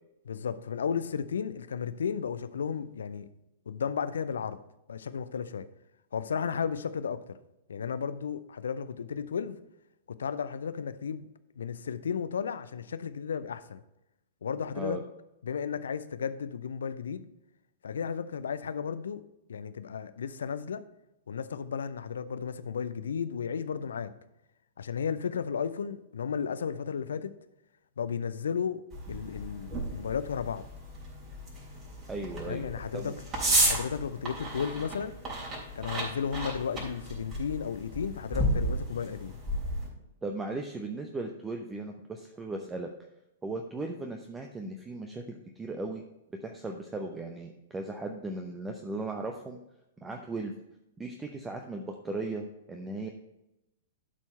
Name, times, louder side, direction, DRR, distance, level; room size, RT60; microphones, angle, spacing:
voice 1, 0.3-3.3 3.7-4.6 4.9-5.7 6.1-7.4 7.7-9.6 10.1-11.3 11.6-13.8 14.4-15.0 15.4-17.2 17.8-19.2 19.5-20.8 21.3-24.1 24.8-27.3 28.0-28.8 29.1-30.7 32.4-33.1 33.6-35.2 35.8-39.4, left 7 dB, 65° left, 0.5 m, -34 dB
sound 1, 28.9-39.9, right 1 dB, 30° right, 3.3 m, -33 dB
voice 2, 32.1-33.1 40.2-42.9 43.4-46.0 46.4-49.6 50.0-50.5 51.0-53.1, right 2 dB, 10° right, 0.7 m, -37 dB
12.0 x 4.5 x 4.4 m
figure-of-eight pair, 105°, 0 cm